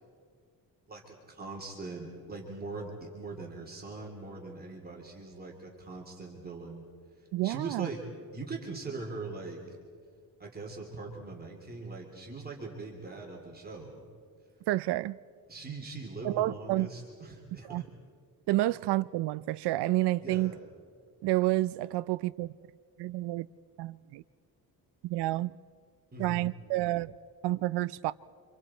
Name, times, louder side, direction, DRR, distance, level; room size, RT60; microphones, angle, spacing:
voice 1, 0.9-6.8 7.2-8.0 8.3-9.6 10.4-14.1 15.5-17.8 20.2-20.6 26.1-26.5, right 3 dB, 25° right, 3.2 m, -41 dB
voice 2, 7.3-7.9 14.7-15.2 16.2-16.9 17.6-17.8 18.5-20.5 21.2-22.5 23.0-23.5 23.8-24.2 25.0-25.6 26.2-27.2 27.4-28.1, right 16 dB, 90° right, 0.5 m, -29 dB
29.5 x 26.0 x 4.4 m
cardioid pair, 145°, 39 cm